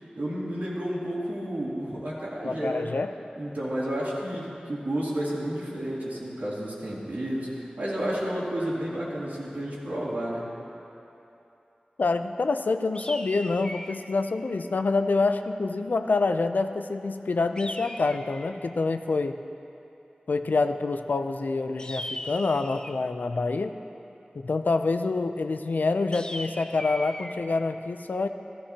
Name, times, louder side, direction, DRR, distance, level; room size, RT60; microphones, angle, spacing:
voice 1, 0.1-2.9 3.3-10.5, right 1 dB, 90° right, -8 dB, 2.9 m, -31 dB
voice 2, 2.4-3.1 12.0-19.4 20.3-23.8 24.3-28.3, left 3 dB, 85° left, 8 dB, 0.4 m, -26 dB
sound 1, 12.9-14.1 17.6-18.6 21.8-23.1 26.1-27.3, left 1 dB, 30° left, 0.6 m, -38 dB
14.0 x 14.0 x 2.9 m, 2.8 s
wide cardioid pair, 55°, 3 cm